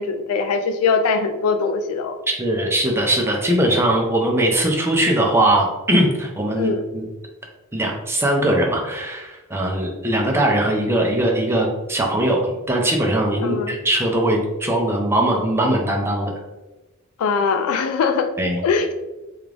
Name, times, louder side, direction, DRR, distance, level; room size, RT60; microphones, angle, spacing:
voice 1, 0.0-2.1 6.6-6.8 13.4-13.7 17.2-18.3 18.6-18.9, left 5 dB, 85° left, 7 dB, 0.3 m, -21 dB
voice 2, 2.3-7.0 7.7-16.3 18.4-18.6, right 1 dB, 10° right, 0 dB, 0.5 m, -20 dB
3.5 x 2.4 x 3.3 m, 1.1 s
head